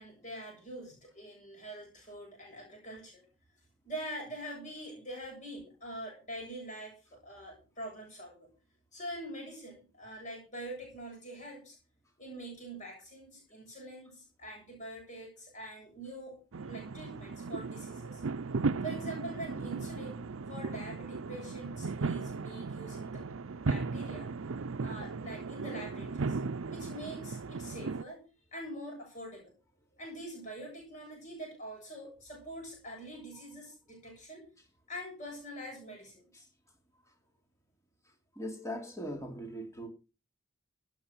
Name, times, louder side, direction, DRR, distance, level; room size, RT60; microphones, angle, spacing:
voice 1, 0.0-3.3 3.8-8.5 8.9-11.8 12.2-16.4 16.6-18.2 18.8-20.2 20.5-23.3 23.7-24.3 24.8-26.4 26.7-28.2 28.5-29.5 30.0-34.5 34.9-36.5, right 1 dB, 35° left, 7.5 m, -44 dB
sound 1, 16.5-28.0, right 4 dB, 85° right, 0.6 m, -36 dB
voice 2, 38.3-39.9, equal, 15° left, 2.9 m, -40 dB
17.5 x 7.6 x 6.1 m
head